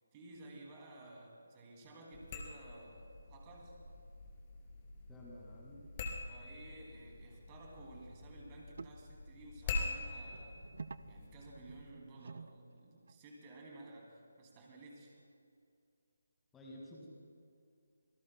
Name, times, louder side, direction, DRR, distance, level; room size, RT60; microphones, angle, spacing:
voice 1, 0.1-3.8 6.3-10.6 11.1-15.2, right 2 dB, 20° right, 0 dB, 2.5 m, -54 dB
sound 1, 2.1-11.9, left 3 dB, 25° left, 2.1 m, -45 dB
voice 2, 5.1-5.9 16.5-17.1, left 1 dB, 10° left, -4 dB, 2.0 m, -52 dB
sound 2, 5.5-6.1 6.3-6.4 7.2-7.3 7.6-7.7 8.8-9.0 10.3-13.2 15.2-15.3, right 4 dB, 55° right, 0.4 m, -52 dB
26.5 x 18.5 x 2.2 m, 2.4 s
figure-of-eight pair, 150°, 0 cm